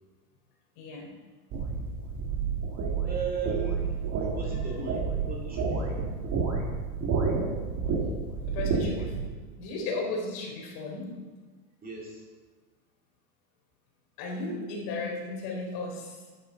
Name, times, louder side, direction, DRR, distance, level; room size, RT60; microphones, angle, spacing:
voice 1, 0.8-1.1 8.5-9.1 9.6-11.1 14.2-16.2, left 3 dB, 50° left, -1 dB, 3.4 m, -35 dB
sound 1, 1.5-9.2, right 5 dB, 35° right, 2.2 m, -30 dB
voice 2, 3.0-6.1 11.8-12.2, right 6 dB, 20° right, -2 dB, 2.2 m, -37 dB
12.0 x 10.0 x 3.9 m, 1.3 s
supercardioid pair, 125°, 47 cm